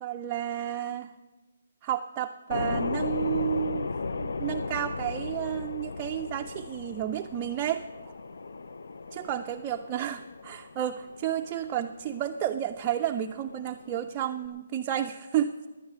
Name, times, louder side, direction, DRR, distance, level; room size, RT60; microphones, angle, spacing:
voice 1, 0.0-1.1 1.8-3.9 4.2-8.1 9.1-15.5, right 10 dB, 15° right, 4 dB, 0.3 m, -31 dB
sound 1, 2.5-14.5, left 4 dB, 80° left, 0.6 m, -36 dB
16.5 x 10.5 x 6.0 m, 1.3 s
hypercardioid pair, 175°, 0 cm